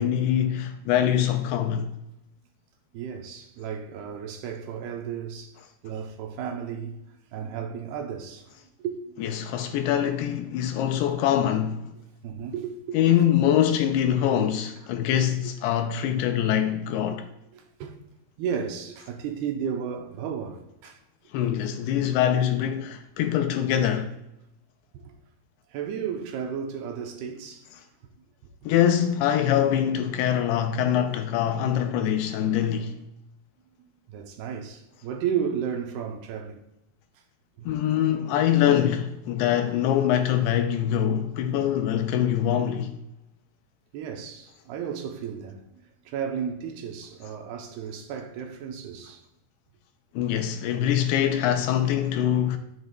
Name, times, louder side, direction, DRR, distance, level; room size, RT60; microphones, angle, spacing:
voice 1, 0.0-1.9 9.2-11.9 12.9-17.3 21.3-24.1 28.7-33.0 37.7-43.0 50.1-52.6, left 10 dB, 85° left, 2.5 m, -24 dB
voice 2, 2.9-5.5 5.8-9.2 12.2-13.0 17.1-17.2 17.5-17.9 18.4-21.0 24.9-25.1 25.7-27.7 34.1-36.6 37.6-37.7 43.9-49.2, right 7 dB, 80° right, 2.6 m, -33 dB
12.0 x 7.9 x 2.3 m
omnidirectional pair, 4.9 m